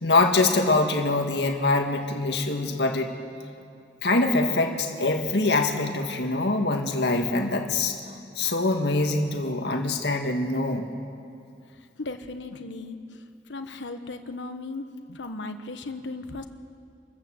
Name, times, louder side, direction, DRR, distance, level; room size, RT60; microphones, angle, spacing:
voice 1, 0.0-3.1 4.0-8.0 8.4-10.8, left 2 dB, 70° left, 4 dB, 1.8 m, -24 dB
voice 2, 12.0-13.0 13.5-16.5, left 2 dB, 85° left, 8 dB, 1.2 m, -36 dB
26.5 x 13.5 x 7.8 m, 2.5 s
head